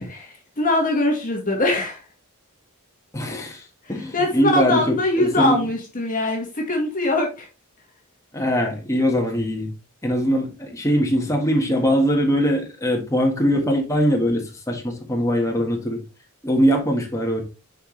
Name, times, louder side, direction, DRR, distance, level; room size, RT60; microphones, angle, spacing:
voice 1, 0.1-2.0 4.1-7.5, left 2 dB, 40° left, 1.8 m, -22 dB
voice 2, 3.1-3.6 3.9-5.7 8.3-9.7 10.0-16.0 16.4-17.4, equal, 15° left, 1.6 m, -21 dB
7.9 x 4.7 x 3.3 m
head